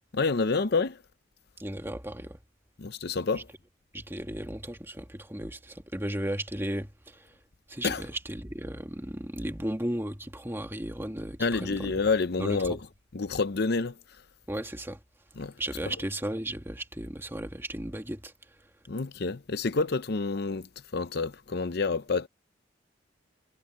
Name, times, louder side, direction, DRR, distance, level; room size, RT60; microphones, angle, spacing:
voice 1, 0.1-1.0 2.8-3.5 7.8-8.0 11.4-12.8 13.1-13.9 15.4-15.5 18.9-22.3, left 4 dB, 55° left, 0.7 m, -28 dB
voice 2, 1.6-2.4 3.3-3.4 3.9-7.3 7.7-11.9 12.4-12.6 14.5-15.0 15.6-18.3, right 1 dB, 10° right, 1.9 m, -35 dB
head